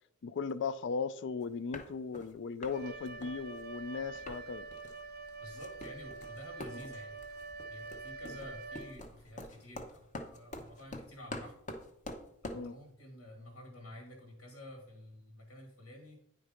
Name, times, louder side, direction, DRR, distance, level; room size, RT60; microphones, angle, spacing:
voice 1, 0.2-4.7 6.7-6.8 8.3-8.4 12.5-12.7, left 5 dB, 55° left, 0.4 m, -37 dB
sound 1, 1.4-1.5 1.7-2.3 2.6-2.8 3.1-4.4 4.7-5.0 5.3-12.7, left 1 dB, 35° left, 0.9 m, -46 dB
Wind instrument woodwind instrument, 2.7-9.3, right 3 dB, 45° right, 0.6 m, -46 dB
voice 2, 5.4-7.2 7.7-11.6 12.4-16.2, left 1 dB, 80° left, 2.1 m, -50 dB
9.6 x 4.6 x 5.0 m
head